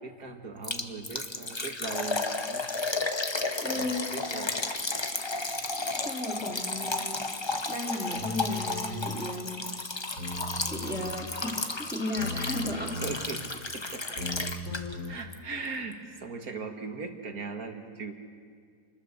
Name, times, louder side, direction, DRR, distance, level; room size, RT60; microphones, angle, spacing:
voice 1, 0.0-2.7 3.8-4.8 13.0-14.2 15.1-18.1, right 4 dB, 55° right, 4 dB, 2.2 m, -39 dB
Liquid, 0.6-15.1 15.3-15.4 15.9-16.0, left 3 dB, 20° left, 0.8 m, -33 dB
voice 2, 3.6-4.1 6.0-7.2 7.7-9.7 10.7-13.0, left 2 dB, ahead, -7 dB, 3.4 m, -35 dB
sound 1, 8.2-9.2 10.2-11.2 12.2-13.2 14.2-15.1, left 1 dB, 90° right, 6.6 m, -37 dB
28.5 x 21.0 x 6.8 m, 2.1 s
omnidirectional pair, 1.9 m